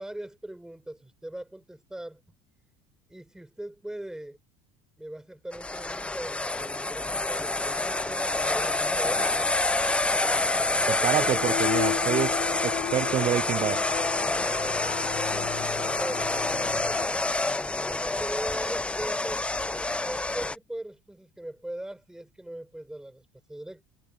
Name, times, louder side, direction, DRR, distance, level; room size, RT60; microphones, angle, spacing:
voice 1, 0.0-2.2 3.1-4.4 5.0-9.4 10.6-11.6 14.2-15.7 16.0-16.3 16.6-17.1 17.9-23.8, right 1 dB, 5° right, 7.4 m, -40 dB
nathalie&winny, 5.5-20.6, left 2 dB, 10° left, 1.0 m, -27 dB
sound 1, 7.6-17.1, left 16 dB, 55° left, 0.9 m, -36 dB
voice 2, 11.0-12.4 12.6-13.8, right 11 dB, 45° right, 0.8 m, -27 dB
supercardioid pair, 95°, 11 cm